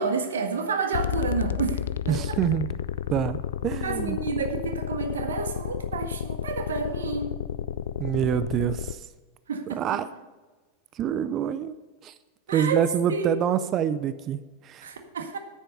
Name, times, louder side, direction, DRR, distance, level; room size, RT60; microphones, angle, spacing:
voice 1, 0.0-1.8 2.1-2.4 3.8-7.4 9.5-10.0 12.5-13.4 14.8-15.4, right 5 dB, 65° right, 5 dB, 1.6 m, -30 dB
sound 1, 0.9-8.9, left 10 dB, 60° left, 0.4 m, -31 dB
voice 2, 2.1-2.7 3.1-4.2 8.0-9.0 9.8-10.1 10.9-11.8 12.0-12.1 12.5-14.9, right 9 dB, 30° right, 14 dB, 0.5 m, -26 dB
10.0 x 10.0 x 5.4 m, 1.3 s
figure-of-eight pair, 90°, 0 cm